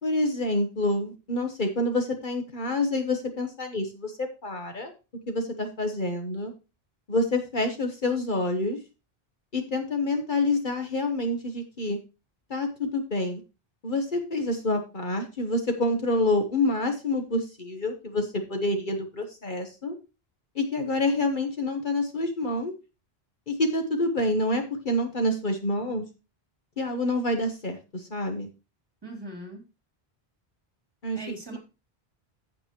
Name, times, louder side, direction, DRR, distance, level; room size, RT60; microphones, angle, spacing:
voice 1, 0.0-4.9 5.3-6.5 7.1-8.8 9.5-12.0 12.5-13.4 13.8-20.0 20.5-22.7 23.5-26.0 26.8-28.5 31.0-31.2, left 2 dB, 55° left, 5 dB, 1.3 m, -27 dB
voice 2, 29.0-29.6 31.1-31.6, right 1 dB, 25° right, 1 dB, 3.0 m, -40 dB
15.0 x 5.3 x 3.0 m, 0.28 s
omnidirectional pair, 1.0 m